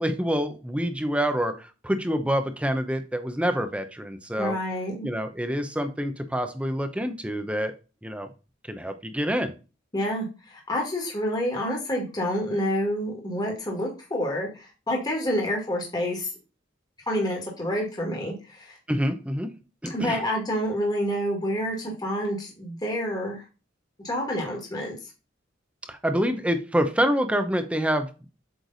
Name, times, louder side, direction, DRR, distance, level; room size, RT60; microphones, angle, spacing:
voice 1, 0.0-4.6 5.0-7.7 8.0-8.3 8.7-9.5 18.9-19.5 19.8-20.2 25.9-28.3, equal, 5° right, 8 dB, 0.7 m, -27 dB
voice 2, 4.4-5.0 9.9-16.3 17.1-18.8 19.9-23.4 24.0-25.0, equal, 20° left, -1 dB, 1.7 m, -28 dB
8.0 x 3.3 x 4.0 m, 0.32 s
head